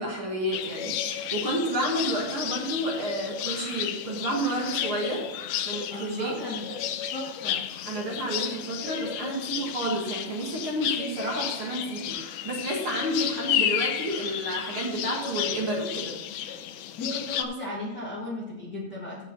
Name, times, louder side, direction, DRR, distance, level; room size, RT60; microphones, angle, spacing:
voice 1, 0.0-5.2 5.6-6.4 7.8-16.1, right 1 dB, 40° right, -2 dB, 2.5 m, -30 dB
sound 1, 0.5-17.4, left 10 dB, 75° left, 1.9 m, -32 dB
voice 2, 5.9-7.6 17.0-19.3, left 1 dB, 40° left, -4 dB, 1.6 m, -36 dB
15.0 x 6.2 x 4.0 m, 1.1 s
omnidirectional pair, 4.3 m